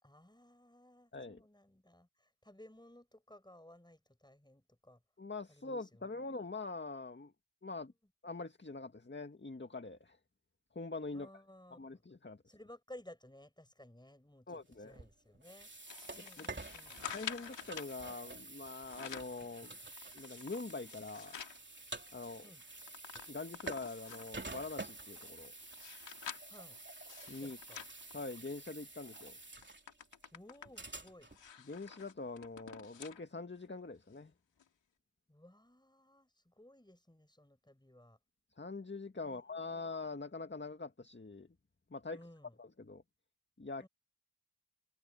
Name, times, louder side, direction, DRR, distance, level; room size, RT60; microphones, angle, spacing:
voice 1, 0.0-5.0 5.5-6.3 11.1-12.0 12.5-15.7 16.1-17.2 22.4-22.6 26.5-26.8 27.4-27.8 30.3-31.3 35.3-38.2 39.2-39.9 42.1-42.6 43.8-43.9, left 1 dB, 10° left, 6.9 m, -58 dB
voice 2, 1.1-1.4 5.2-7.3 7.6-7.9 8.2-10.2 10.8-11.3 11.8-12.4 14.5-15.0 16.2-16.5 17.1-19.7 20.1-21.3 22.1-22.5 23.3-25.5 27.3-27.6 28.1-29.4 31.7-34.3 38.6-41.5 41.9-42.2 42.6-43.0 43.6-43.9, left 3 dB, 25° left, 1.9 m, -44 dB
sound 1, 14.7-31.5, right 2 dB, 25° right, 3.3 m, -49 dB
sound 2, 15.9-17.9 18.7-19.4 19.9-21.6 22.0-22.1 22.4-24.4 25.0-28.7 29.1-29.3 29.6-33.2 33.6-33.7 34.6-34.7, left 8 dB, 90° left, 2.3 m, -49 dB
cardioid pair, 55°, 42 cm